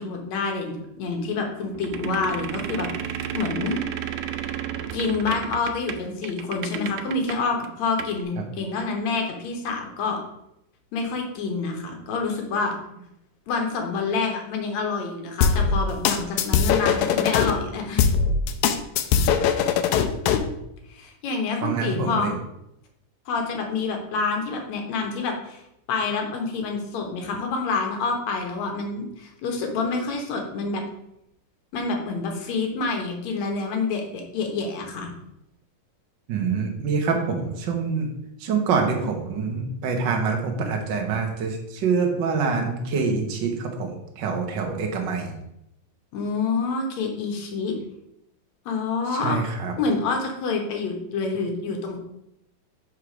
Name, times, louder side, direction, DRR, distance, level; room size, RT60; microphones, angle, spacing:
voice 1, 0.0-3.8 4.9-10.2 10.9-12.8 13.5-18.1 20.9-22.4 23.3-25.6 25.9-30.8 31.7-35.1 46.1-47.8 48.7-49.4 49.8-52.0, left 4 dB, 65° left, 2 dB, 2.2 m, -27 dB
sound 1, 1.7-7.4 7.6-7.7 8.0-8.2, right 9 dB, 85° right, 2.2 m, -32 dB
sound 2, 15.4-17.5 18.0-20.5, left 7 dB, 85° left, 1.7 m, -21 dB
voice 2, 21.6-22.3 36.3-38.1 38.4-45.3 49.2-49.7, right 5 dB, 65° right, 2 dB, 1.1 m, -25 dB
5.6 x 4.9 x 6.0 m, 0.82 s
omnidirectional pair, 3.9 m